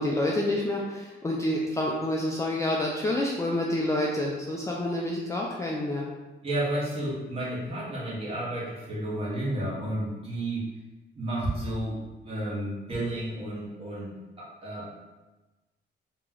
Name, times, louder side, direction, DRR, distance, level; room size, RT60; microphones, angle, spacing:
voice 1, 0.0-6.0, left 1 dB, 15° left, -3 dB, 0.3 m, -28 dB
voice 2, 6.4-10.7 11.1-14.1 14.4-14.9, right 1 dB, 30° right, -7 dB, 1.2 m, -32 dB
3.0 x 2.9 x 3.7 m, 1.1 s
wide cardioid pair, 150°, 18 cm